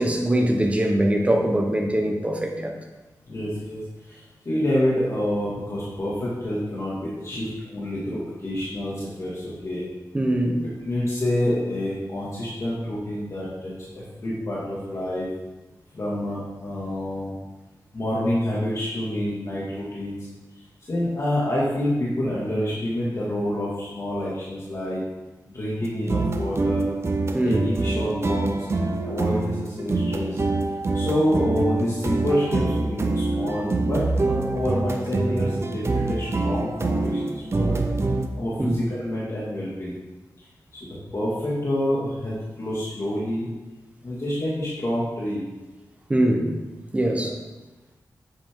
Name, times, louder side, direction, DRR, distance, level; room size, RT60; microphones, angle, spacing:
voice 1, 0.0-2.8 10.1-10.6 27.3-27.6 38.6-38.8 46.1-46.5 46.9-47.3, right 1 dB, 20° right, 2 dB, 1.2 m, -22 dB
voice 2, 3.3-9.9 10.8-15.3 15.9-17.3 17.9-20.2 20.8-25.0 25.5-26.8 27.4-30.4 30.9-37.8 38.4-40.0 40.7-43.5 44.0-45.5 47.1-47.3, left 1 dB, 45° left, -8 dB, 2.3 m, -27 dB
sound 1, 25.8-38.3, right 2 dB, 40° right, 0.8 m, -25 dB
9.7 x 8.3 x 3.8 m, 1.1 s
wide cardioid pair, 145°, 7 cm